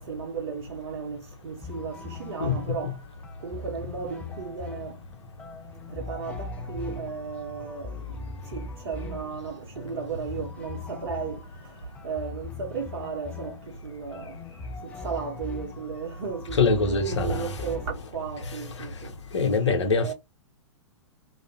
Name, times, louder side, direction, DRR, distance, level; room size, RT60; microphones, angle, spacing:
voice 1, 0.0-3.0 3.4-5.0 5.9-11.8 12.0-14.4 14.8-19.1 20.0-20.1, right 6 dB, 50° right, 0.7 m, -35 dB
sound 1, 1.6-18.9, left 4 dB, 10° left, 0.4 m, -40 dB
voice 2, 2.4-2.8 16.5-17.5 18.8-18.9 19.3-20.1, left 4 dB, 65° left, 0.7 m, -24 dB
2.4 x 2.1 x 2.5 m
figure-of-eight pair, 105°, 16 cm